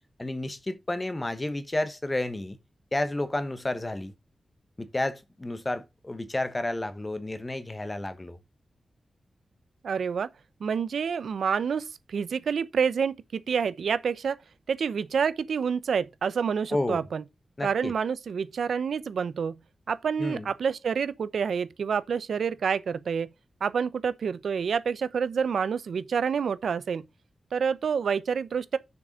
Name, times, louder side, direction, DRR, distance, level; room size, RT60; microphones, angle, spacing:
voice 1, 0.2-2.6 2.9-4.1 4.8-8.4 16.7-17.0 17.6-17.9 20.2-20.5, left 1 dB, 15° left, 1.0 m, -31 dB
voice 2, 9.8-10.3 10.6-14.4 14.7-17.2 17.6-19.6 19.9-23.3 23.6-27.1 27.5-28.8, right 6 dB, 80° right, 0.7 m, -28 dB
6.8 x 6.1 x 5.1 m
wide cardioid pair, 170°, 0 cm